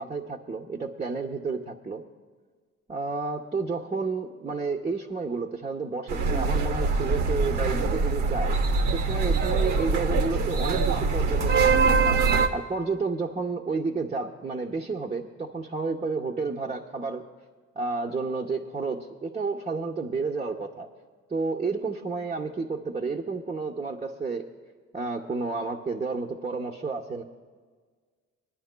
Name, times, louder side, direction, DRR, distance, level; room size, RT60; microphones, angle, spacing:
voice 1, 0.0-2.0 2.9-8.6 8.9-12.2 12.5-17.2 17.8-20.9 21.3-24.5 24.9-27.2, right 4 dB, 20° right, -2 dB, 0.7 m, -31 dB
sound 1, 6.1-12.5, right 4 dB, 85° right, 0.9 m, -23 dB
25.5 x 10.0 x 2.2 m, 1.5 s
cardioid pair, 90°, 30 cm